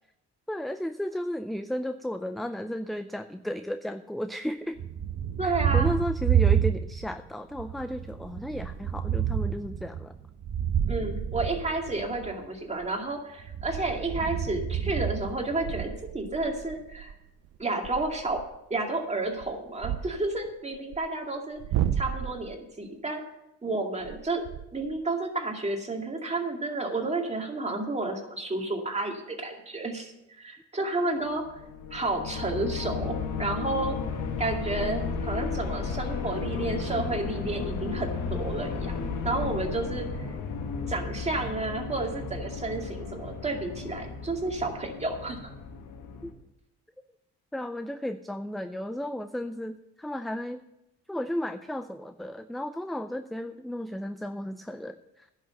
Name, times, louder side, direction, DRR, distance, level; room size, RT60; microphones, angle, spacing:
voice 1, 0.5-4.8 5.4-10.2 39.8-39.9 46.2-46.3 47.5-50.6 51.1-55.3, equal, ahead, 10 dB, 0.4 m, -34 dB
Thunder, 4.8-7.2 7.5-12.3 13.4-16.0, right 9 dB, 55° right, 1.0 m, -29 dB
voice 2, 5.4-5.9 10.9-17.1 17.6-18.4 18.7-21.6 22.0-23.2 23.6-24.4 24.7-31.4 31.9-34.0 34.4-39.0 39.2-40.1 40.9-45.5, right 2 dB, 20° right, 2 dB, 2.3 m, -31 dB
sound 1, 8.1-8.2 11.8-12.1 12.6-12.9 13.2-13.3 13.7-14.0 14.5-14.6 15.1-15.3 15.6-18.5 19.2-21.0 21.5-22.6 24.0-25.0, right 10 dB, 80° right, 0.8 m, -35 dB
sound 2, 31.4-46.3, left 5 dB, 85° left, 1.6 m, -34 dB
11.0 x 6.5 x 7.8 m, 0.87 s
cardioid pair, 90°, 30 cm